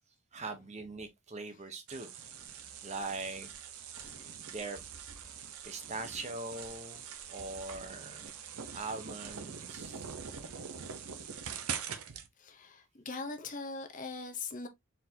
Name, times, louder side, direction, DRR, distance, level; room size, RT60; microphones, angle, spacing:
voice 1, 0.3-2.1 2.8-3.5 4.5-4.8 5.6-7.0 7.3-8.3 8.7-10.1, right 3 dB, 30° right, 0.8 m, -41 dB
sound 1, 1.9-12.3, right 7 dB, 75° right, 0.8 m, -44 dB
voice 2, 4.0-4.3 5.9-6.0 9.7-9.9 11.8-12.0 12.4-14.7, left 4 dB, 35° left, 0.7 m, -42 dB
4.5 x 3.9 x 2.7 m
head